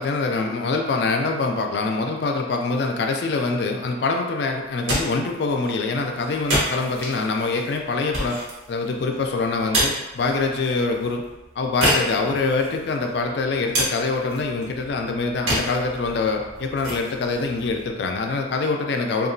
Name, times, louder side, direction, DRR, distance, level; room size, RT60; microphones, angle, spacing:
voice 1, 0.0-8.4 8.7-11.2 11.6-19.3, left 3 dB, 55° left, 3 dB, 0.3 m, -24 dB
sound 1, 4.6-18.5, right 1 dB, 85° right, 0.9 m, -30 dB
2.8 x 2.4 x 2.6 m, 1.1 s
head